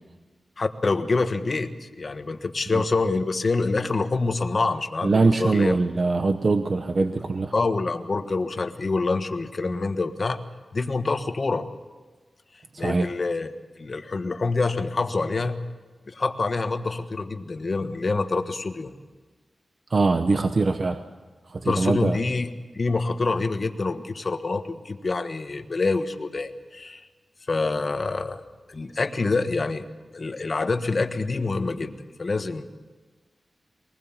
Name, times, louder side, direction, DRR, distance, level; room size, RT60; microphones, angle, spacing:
voice 1, 0.6-5.8 7.5-10.4 10.7-11.7 12.8-13.5 13.7-15.6 16.1-18.9 21.6-22.5 22.7-27.0 27.5-29.9 30.1-32.8, left 3 dB, 40° left, 7 dB, 1.4 m, -26 dB
voice 2, 5.0-7.5 12.7-13.1 19.9-21.0 21.5-22.2, right 3 dB, 45° right, 7 dB, 1.0 m, -22 dB
23.0 x 20.0 x 7.4 m, 1.3 s
wide cardioid pair, 125°, 0 cm